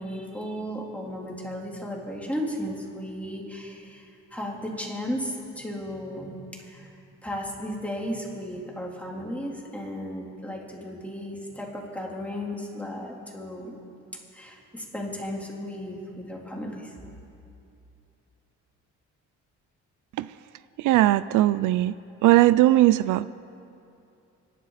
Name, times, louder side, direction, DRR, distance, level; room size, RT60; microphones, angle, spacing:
voice 1, 0.0-6.9 7.2-13.8 14.3-16.9, equal, 5° left, -2 dB, 3.6 m, -35 dB
voice 2, 20.8-21.9 22.2-23.3, right 15 dB, 85° right, 16 dB, 0.5 m, -19 dB
25.5 x 12.0 x 4.2 m, 2.7 s
cardioid pair, 90°, 30 cm